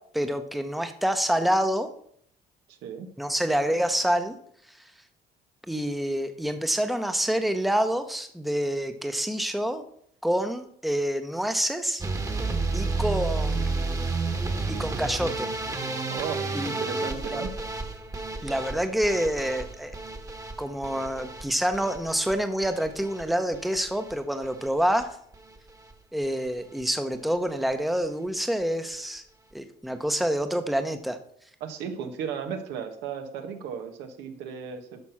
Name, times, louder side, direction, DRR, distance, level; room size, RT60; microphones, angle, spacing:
voice 1, 0.1-1.9 3.2-4.4 5.7-9.9 10.2-12.1 12.7-14.0 14.7-15.5 16.5-17.5 18.4-19.9 20.6-25.1 26.1-29.2 29.5-31.2, equal, ahead, 8 dB, 0.9 m, -27 dB
voice 2, 2.7-3.1 16.1-17.5 31.6-35.0, right 7 dB, 85° right, 6 dB, 1.5 m, -35 dB
sound 1, 12.0-24.1 24.4-25.0 25.3-25.9 26.2-26.5 26.8-26.9 27.1-27.2, right 3 dB, 20° right, 1.4 m, -31 dB
11.0 x 6.0 x 5.8 m, 0.65 s
cardioid pair, 110°, 17 cm